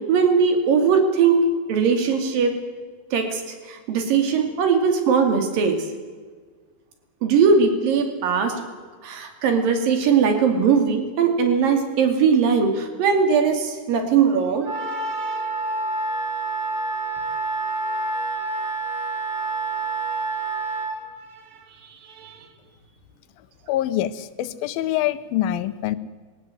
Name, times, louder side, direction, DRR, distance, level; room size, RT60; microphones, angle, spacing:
voice 1, 0.1-1.4 1.7-2.6 3.1-3.4 3.7-5.8 7.2-8.6 9.0-15.4 22.2-22.4, right 6 dB, 70° right, 6 dB, 4.2 m, -20 dB
Wind instrument woodwind instrument, 14.6-21.0, right 3 dB, 50° right, 3.2 m, -27 dB
voice 2, 23.7-26.0, left 13 dB, 80° left, 14 dB, 2.6 m, -25 dB
21.0 x 18.0 x 7.8 m, 1.5 s
omnidirectional pair, 4.2 m